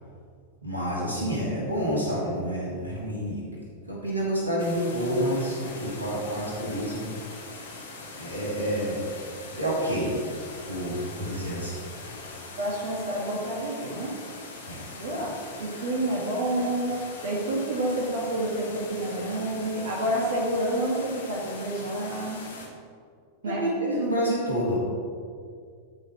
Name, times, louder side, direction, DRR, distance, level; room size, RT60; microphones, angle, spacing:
voice 1, 0.6-3.4 3.9-7.2 8.2-9.0 9.5-10.1 10.7-11.8 14.7-14.8 23.4-24.8, equal, 80° right, -6 dB, 3.0 m, -28 dB
sound 1, 4.6-22.7, left 3 dB, 70° left, 2.3 m, -42 dB
voice 2, 12.6-14.2 14.9-22.5 23.4-23.6, right 1 dB, 60° right, -4 dB, 1.9 m, -29 dB
13.0 x 5.1 x 6.2 m, 2.2 s
figure-of-eight pair, 90°, 0 cm